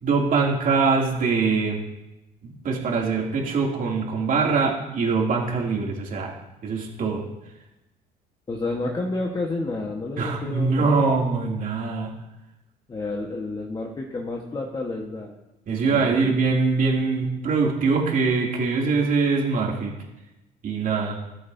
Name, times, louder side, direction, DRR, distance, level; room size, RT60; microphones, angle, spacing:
voice 1, 0.0-1.8 2.4-6.3 6.6-7.2 10.2-12.1 15.7-19.9 20.6-21.2, right 4 dB, 55° right, -1 dB, 2.8 m, -23 dB
voice 2, 8.5-11.0 12.9-15.3 15.8-16.2, left 2 dB, 25° left, 0 dB, 1.4 m, -30 dB
14.0 x 13.5 x 2.8 m, 0.97 s
cardioid pair, 110°, 17 cm